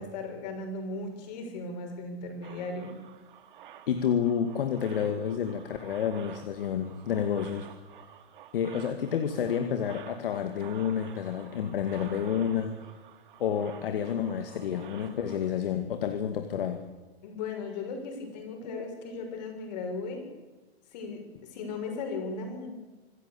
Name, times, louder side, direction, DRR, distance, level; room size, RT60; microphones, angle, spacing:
voice 1, 0.0-3.0 17.2-20.3 20.9-22.7, left 3 dB, 40° left, 4 dB, 6.6 m, -37 dB
sound 1, 2.4-15.5, right 9 dB, 55° right, 2.8 m, -50 dB
voice 2, 3.9-7.7 8.5-12.9 13.4-16.8, left 8 dB, 60° left, 7 dB, 2.3 m, -29 dB
26.0 x 15.0 x 8.5 m, 1.2 s
hypercardioid pair, 160°, 31 cm